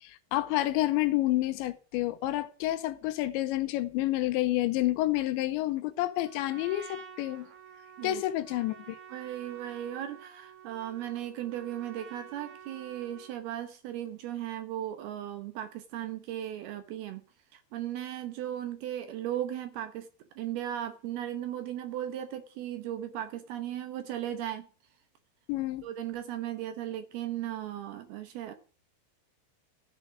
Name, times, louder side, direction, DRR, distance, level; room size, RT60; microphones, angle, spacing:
voice 1, 0.0-7.5 8.0-9.0 25.5-25.9, left 16 dB, 80° left, 3.0 m, -29 dB
Trumpet, 6.1-13.4, right 8 dB, 55° right, 2.1 m, -49 dB
voice 2, 9.1-17.2 17.5-20.1 20.4-24.7 25.8-28.5, right 11 dB, 75° right, 2.5 m, -36 dB
14.5 x 6.7 x 4.9 m
omnidirectional pair, 5.3 m